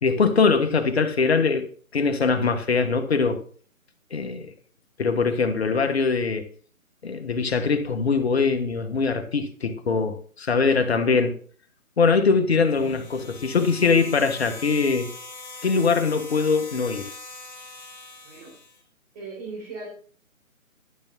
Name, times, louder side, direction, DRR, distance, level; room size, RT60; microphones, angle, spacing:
voice 1, 0.0-1.7 1.9-3.4 4.1-4.5 5.0-6.5 7.0-11.4 12.0-15.1 15.6-17.1, left 4 dB, 50° left, 1.5 m, -22 dB
sound 1, 12.6-18.8, left 3 dB, 30° left, 2.5 m, -42 dB
voice 2, 19.1-19.9, right 3 dB, 30° right, 4.4 m, -37 dB
12.0 x 7.2 x 4.0 m
figure-of-eight pair, 155°, 42 cm